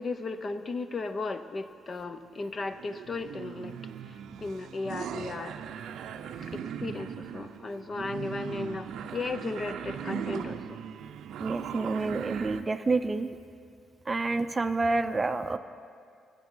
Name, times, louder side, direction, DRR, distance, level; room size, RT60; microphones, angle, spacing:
voice 1, 0.0-3.8 4.0-5.6 6.4-10.8, left 3 dB, 40° left, 11 dB, 0.6 m, -36 dB
sound 1, 2.4-12.6, right 8 dB, 75° right, 0.5 m, -39 dB
voice 2, 11.4-13.3 14.1-15.6, right 3 dB, 25° right, 10 dB, 0.5 m, -28 dB
14.5 x 6.8 x 7.2 m, 2.2 s
cardioid pair, 90°, 0 cm